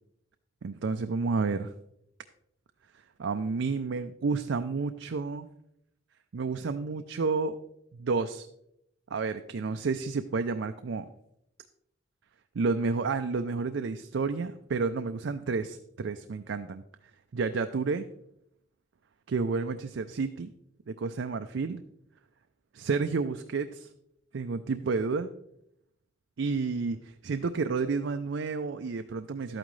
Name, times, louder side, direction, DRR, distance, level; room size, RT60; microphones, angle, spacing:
voice 1, 0.6-1.7 3.2-5.5 6.3-7.6 7.9-8.5 9.1-11.1 12.5-16.8 17.3-18.1 19.3-20.5 20.9-21.8 22.7-23.9 24.3-25.3 26.4-29.6, right 4 dB, 75° right, 8 dB, 0.5 m, -30 dB
11.5 x 8.9 x 3.2 m, 0.78 s
head